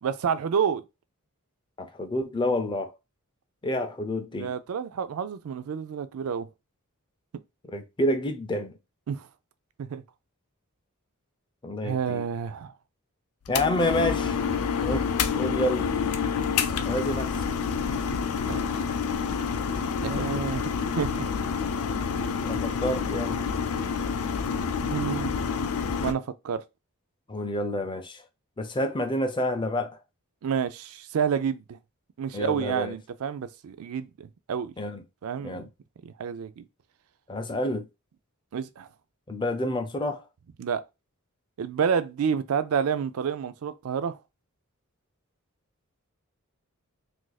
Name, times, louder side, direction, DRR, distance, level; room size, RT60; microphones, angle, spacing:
voice 1, 0.0-0.8 4.3-6.5 9.1-9.3 9.8-10.0 11.8-12.7 18.1-18.2 18.5-18.7 20.0-20.7 21.0-21.3 24.8-25.3 26.0-26.6 30.4-31.8 32.2-34.7 35.2-35.7 36.0-36.6 38.5-38.9 40.6-40.8 41.6-44.2, right 7 dB, 75° right, 0.4 m, -29 dB
voice 2, 1.8-3.0 3.6-4.5 7.7-8.8 11.6-12.2 13.5-14.4 14.8-15.1 15.3-15.9 16.9-17.5 20.2-20.4 22.4-23.4 27.3-28.2 28.6-30.0 32.3-32.9 34.8-35.0 35.4-35.7 37.3-37.9 39.3-40.3, left 1 dB, 20° left, 0.4 m, -29 dB
sound 1, 13.5-26.1, left 6 dB, 80° left, 0.4 m, -28 dB
2.6 x 2.5 x 3.9 m
head